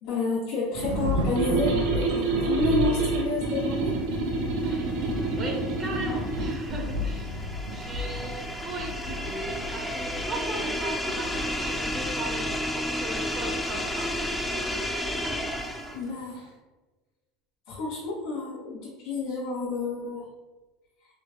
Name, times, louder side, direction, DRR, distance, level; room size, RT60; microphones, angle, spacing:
voice 1, 0.0-4.0 15.9-16.5 17.7-20.3, left 3 dB, 70° left, -4 dB, 0.8 m, -30 dB
Thunder / Rain, 0.7-16.3, equal, 85° right, 0.4 m, -35 dB
sound 1, 1.4-6.6, right 4 dB, 65° right, 0.8 m, -28 dB
sound 2, 4.2-16.1, left 1 dB, 5° left, 0.4 m, -32 dB
voice 2, 4.6-5.0 5.4-7.3 7.7-14.1, right 1 dB, 30° right, 1 dB, 0.8 m, -38 dB
3.1 x 2.8 x 3.1 m, 1.2 s
supercardioid pair, 125°, 0 cm